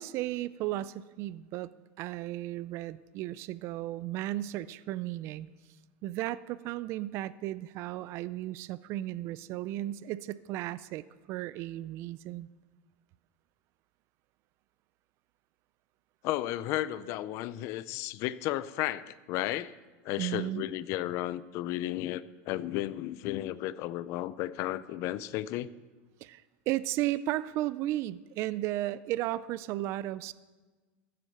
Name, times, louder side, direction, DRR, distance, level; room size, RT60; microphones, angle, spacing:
voice 1, 0.0-1.7 2.0-5.5 6.0-12.5 20.2-20.6 26.2-30.3, right 15 dB, 45° right, 17 dB, 0.4 m, -34 dB
voice 2, 16.2-19.7 20.0-25.7, left 14 dB, 50° left, 17 dB, 0.5 m, -33 dB
15.0 x 7.8 x 6.5 m, 1.3 s
supercardioid pair, 135°, 6 cm